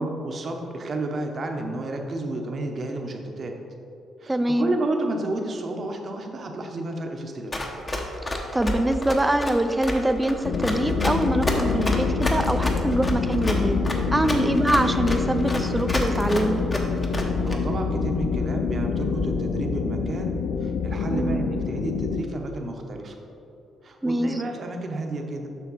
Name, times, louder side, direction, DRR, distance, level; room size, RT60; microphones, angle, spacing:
voice 1, 0.0-3.5 4.2-7.5 14.1-14.4 17.4-23.2 23.8-25.5, right 2 dB, 45° right, 3 dB, 0.9 m, -31 dB
voice 2, 4.3-4.7 8.5-13.8 14.1-16.6 21.1-21.4 24.0-24.3, right 1 dB, 10° right, 9 dB, 0.4 m, -24 dB
Run, 7.5-17.6, left 1 dB, 25° left, 0.9 m, -29 dB
sound 1, 10.4-22.2, left 5 dB, 75° left, 0.4 m, -26 dB
7.2 x 5.6 x 4.1 m, 2.7 s
cardioid pair, 90°, 0 cm